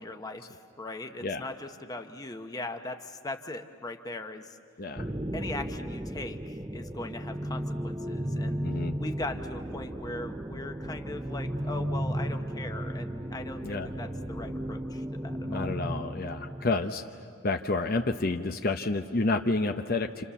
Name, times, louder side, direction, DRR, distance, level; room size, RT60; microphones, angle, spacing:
voice 1, 0.0-4.6 5.3-8.6 9.0-15.7, left 2 dB, 20° left, 5 dB, 1.0 m, -39 dB
sound 1, 5.0-16.9, equal, 15° right, 0.7 m, -34 dB
voice 2, 8.6-8.9 13.6-13.9 15.5-17.0 17.4-20.2, left 3 dB, 45° left, 5 dB, 0.8 m, -29 dB
29.5 x 27.5 x 7.1 m, 2.2 s
head